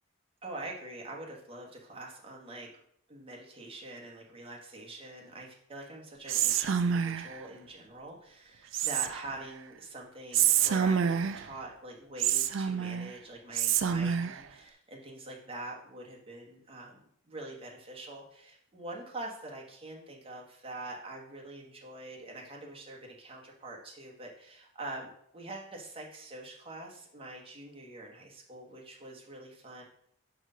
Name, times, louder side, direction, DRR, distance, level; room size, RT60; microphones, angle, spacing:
voice 1, 0.4-2.7 3.1-29.8, right 2 dB, 30° right, -1 dB, 1.3 m, -44 dB
Whispering, 6.3-7.4 8.7-9.4 10.3-11.5 12.2-13.1 13.5-14.4, right 8 dB, 75° right, 0.4 m, -27 dB
5.5 x 4.9 x 5.0 m, 0.67 s
head